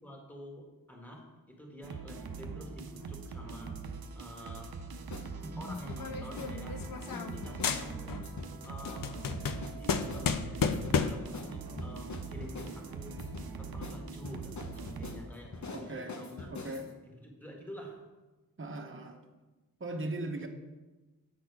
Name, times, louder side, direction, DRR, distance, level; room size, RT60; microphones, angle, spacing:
voice 1, 0.0-3.8 4.1-4.8 5.6-9.1 9.6-13.2 13.6-16.5 17.0-18.0, equal, 5° left, 0 dB, 1.6 m, -48 dB
sound 1, 1.8-15.4, right 4 dB, 80° right, 0.6 m, -43 dB
sound 2, 5.1-5.3 5.7-6.0 6.4-6.5 6.8-7.8 8.2-8.5 8.9-9.0 9.3-10.3 10.7-11.0 11.3-11.5 11.8-12.7 13.2-13.5 13.8-14.0 14.2-16.9, left 3 dB, 50° left, 0.9 m, -43 dB
sound 3, 6.0-7.4 7.6-8.3 8.6-11.3, left 6 dB, 65° left, 0.5 m, -32 dB
voice 2, 15.7-16.2 16.4-16.9 18.6-19.2 19.8-20.5, right 2 dB, 35° right, 3 dB, 0.9 m, -39 dB
8.2 x 4.2 x 4.6 m, 1.2 s
wide cardioid pair, 60°, 36 cm